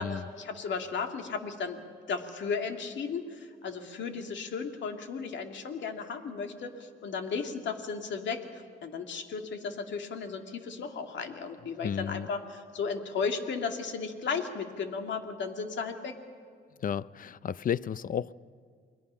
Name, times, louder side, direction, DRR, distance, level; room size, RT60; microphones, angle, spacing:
voice 1, 0.0-1.8 2.1-16.2, left 5 dB, 65° left, 2.4 m, -35 dB
voice 2, 11.8-12.3 16.8-18.3, left 8 dB, 45° left, 0.5 m, -32 dB
29.0 x 21.5 x 5.6 m
cardioid pair, 90°, 20 cm